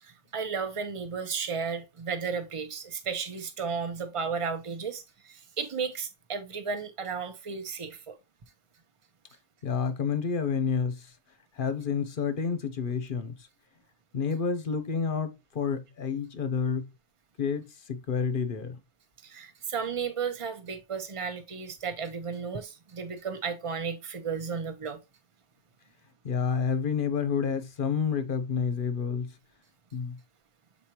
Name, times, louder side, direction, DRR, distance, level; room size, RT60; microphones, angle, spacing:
voice 1, 0.0-8.2 19.2-25.0, right 5 dB, 30° right, 0.9 m, -34 dB
voice 2, 9.6-11.1 11.6-13.5 14.1-16.9 17.4-18.8 26.2-29.3 29.9-30.2, left 6 dB, 50° left, 0.9 m, -29 dB
7.3 x 4.3 x 3.0 m
omnidirectional pair, 1.2 m